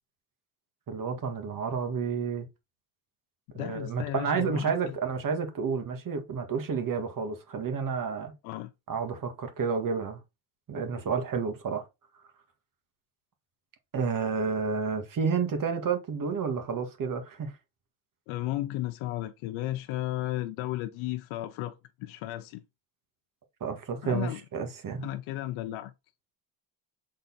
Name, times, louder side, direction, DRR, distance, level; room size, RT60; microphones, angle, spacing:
voice 1, 0.9-2.5 3.5-8.3 8.9-10.2 10.7-11.9 13.9-17.5 23.6-25.1, right 5 dB, 45° right, 2.0 m, -30 dB
voice 2, 3.5-5.0 8.4-8.7 18.3-22.6 24.0-24.4 25.0-25.9, left 15 dB, 85° left, 0.7 m, -34 dB
6.6 x 4.0 x 4.1 m
cardioid pair, 105°, 46 cm